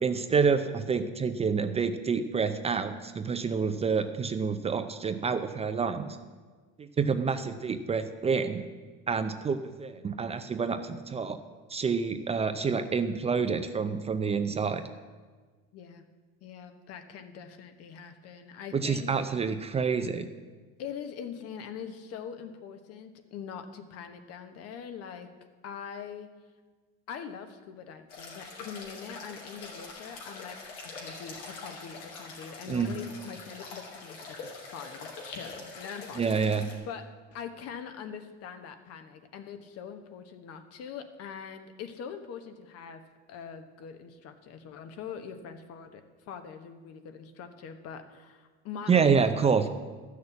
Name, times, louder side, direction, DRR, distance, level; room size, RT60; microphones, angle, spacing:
voice 1, 0.0-6.2 6.8-8.7 9.1-11.4 11.7-14.8 18.7-20.3 32.7-33.0 36.2-36.7 48.9-49.7, right 5 dB, 20° right, 9 dB, 0.5 m, -28 dB
voice 2, 15.7-16.0 16.4-19.1 20.8-25.3 25.6-26.3 27.1-36.3 36.8-43.0 43.3-49.7, left 7 dB, 55° left, 8 dB, 1.3 m, -43 dB
sound 1, 28.1-36.8, left 3 dB, 85° left, 3.2 m, -44 dB
12.5 x 6.5 x 8.2 m, 1.4 s
cardioid pair, 135°, 29 cm